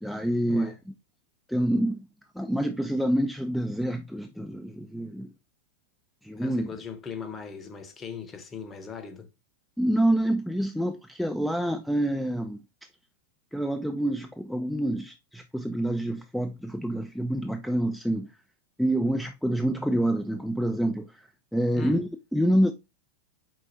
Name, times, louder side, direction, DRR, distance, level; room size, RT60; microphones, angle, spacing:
voice 1, 0.0-0.9 1.5-5.3 6.2-6.7 9.8-12.9 13.5-18.4 18.8-22.7, right 1 dB, ahead, 0.3 m, -27 dB
voice 2, 6.4-9.3 21.8-22.0, left 5 dB, 20° left, 0.9 m, -38 dB
4.7 x 4.0 x 2.7 m
figure-of-eight pair, 90°, 0 cm